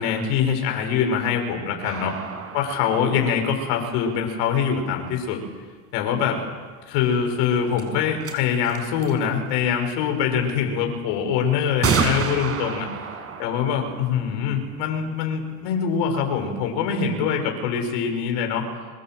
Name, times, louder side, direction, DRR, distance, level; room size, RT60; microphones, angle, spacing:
voice 1, 0.0-2.1 2.5-5.4 5.9-6.4 6.9-12.9 13.4-18.7, left 7 dB, 65° left, 4 dB, 6.3 m, -24 dB
sound 1, 1.8-4.6 7.2-7.3 7.8-7.9 8.2-8.3 8.6-9.2 10.5-10.6 11.8-15.4, right 5 dB, 30° right, 5.7 m, -30 dB
25.5 x 23.5 x 7.9 m, 1.5 s
supercardioid pair, 105°, 48 cm